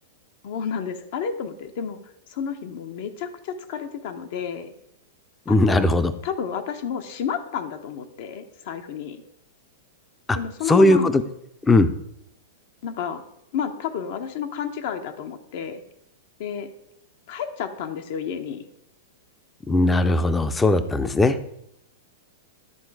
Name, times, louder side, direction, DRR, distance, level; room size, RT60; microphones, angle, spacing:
voice 1, 0.4-2.0 2.3-4.7 5.5-5.9 6.2-9.2 10.3-11.1 12.8-13.2 13.5-15.8 16.4-16.7 17.3-18.6, left 7 dB, 60° left, 7 dB, 0.7 m, -31 dB
voice 2, 5.5-6.1 10.3-10.4 10.7-11.2 11.7-11.9 19.7-21.4, left 2 dB, 10° left, 11 dB, 0.5 m, -18 dB
11.0 x 3.8 x 4.7 m, 0.78 s
hypercardioid pair, 135°, 0 cm